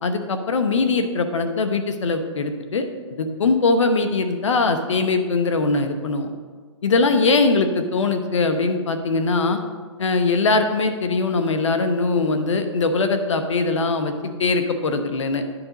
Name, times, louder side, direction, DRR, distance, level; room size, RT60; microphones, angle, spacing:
voice 1, 0.0-2.8 3.1-6.3 6.8-9.6 10.0-14.1 14.4-15.4, left 3 dB, 75° left, 7 dB, 1.0 m, -21 dB
9.9 x 5.0 x 4.0 m, 1.5 s
hypercardioid pair, 145°, 16 cm